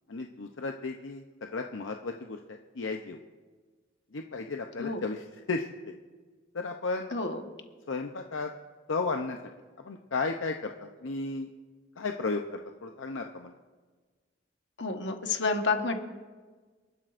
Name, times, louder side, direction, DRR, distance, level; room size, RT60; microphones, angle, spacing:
voice 1, 0.1-3.2 4.1-5.9 6.5-7.1 7.9-8.5 8.9-9.4 9.8-11.5 12.0-13.5, left 3 dB, 85° left, 4 dB, 0.7 m, -34 dB
voice 2, 7.1-7.4 14.8-16.0, left 3 dB, 65° left, 5 dB, 1.3 m, -29 dB
29.0 x 12.0 x 2.5 m, 1.4 s
head